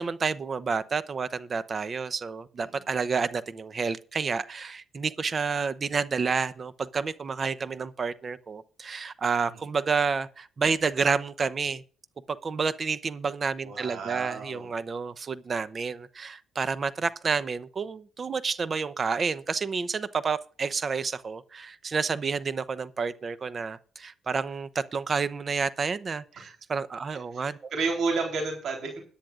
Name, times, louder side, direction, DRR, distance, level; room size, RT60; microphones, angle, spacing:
voice 1, 0.0-11.8 12.3-27.7, right 5 dB, 40° right, 0.7 m, -30 dB
voice 2, 13.6-14.7 26.4-26.5 27.3-29.0, right 4 dB, 70° right, 3.7 m, -31 dB
21.5 x 10.0 x 2.5 m
cardioid pair, 90°, 0 cm